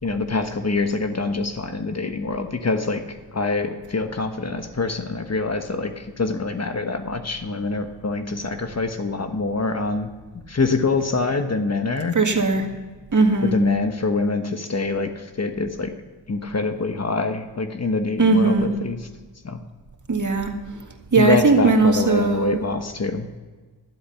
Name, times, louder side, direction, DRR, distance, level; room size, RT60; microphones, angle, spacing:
voice 1, 0.0-3.0 3.3-10.1 10.5-12.1 13.4-15.9 16.3-19.0 19.4-19.6 21.2-23.4, left 3 dB, 35° left, 7 dB, 1.3 m, -25 dB
voice 2, 12.1-12.7 13.1-13.5 18.2-18.7 20.1-20.5 21.1-22.6, right 3 dB, 45° right, 4 dB, 1.9 m, -18 dB
12.5 x 10.5 x 5.7 m, 1.4 s
cardioid pair, 55°, 42 cm